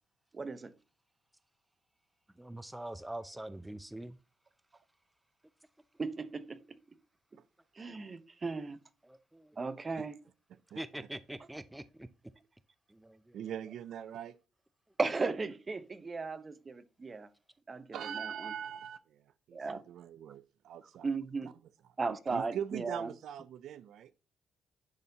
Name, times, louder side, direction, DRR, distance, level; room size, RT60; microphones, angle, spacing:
voice 1, 0.3-0.7 6.0-6.6 7.8-8.8 9.6-10.2 15.0-17.3 17.7-18.5 19.5-19.8 21.0-21.5 22.0-23.1, right 4 dB, 30° right, 1.0 m, -36 dB
voice 2, 2.3-4.2 7.9-8.1 9.0-9.6 10.8-12.1 12.9-13.4, right 1 dB, 10° right, 0.5 m, -44 dB
voice 3, 13.3-14.4 17.9-19.2 19.5-21.1 21.4-21.5 21.8-24.1, right 9 dB, 75° right, 0.4 m, -42 dB
10.5 x 4.2 x 2.8 m
cardioid pair, 90°, 0 cm